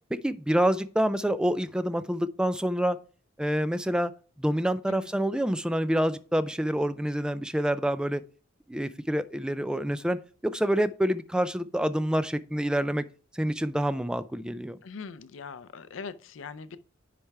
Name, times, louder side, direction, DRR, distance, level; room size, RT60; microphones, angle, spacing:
voice 1, 0.1-3.0 3.4-4.1 4.4-8.2 8.7-13.0 13.3-14.8, equal, 5° right, 0.3 m, -27 dB
voice 2, 14.8-16.8, left 5 dB, 75° left, 0.5 m, -41 dB
9.9 x 3.4 x 4.7 m
head